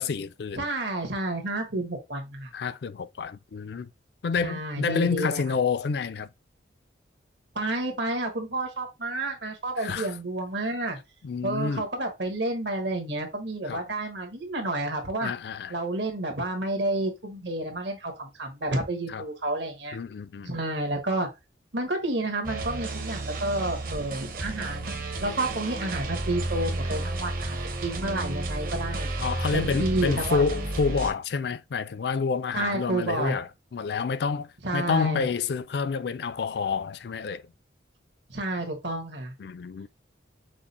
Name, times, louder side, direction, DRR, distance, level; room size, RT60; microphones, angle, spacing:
voice 1, 0.0-0.7 2.5-3.9 4.2-6.3 9.8-10.1 11.2-11.8 13.7-13.8 15.2-15.7 19.1-19.2 19.9-20.5 29.2-37.4 39.4-39.9, left 5 dB, 60° left, 0.4 m, -28 dB
voice 2, 0.5-2.5 4.4-5.4 7.5-11.0 11.4-15.3 15.7-20.0 20.4-21.3 21.7-24.9 25.2-29.1 29.5-30.5 32.5-33.4 34.6-35.3 38.3-39.3, right 2 dB, 70° right, 1.4 m, -30 dB
sound 1, 22.4-31.1, right 2 dB, 45° right, 0.9 m, -32 dB
6.1 x 2.1 x 4.1 m
head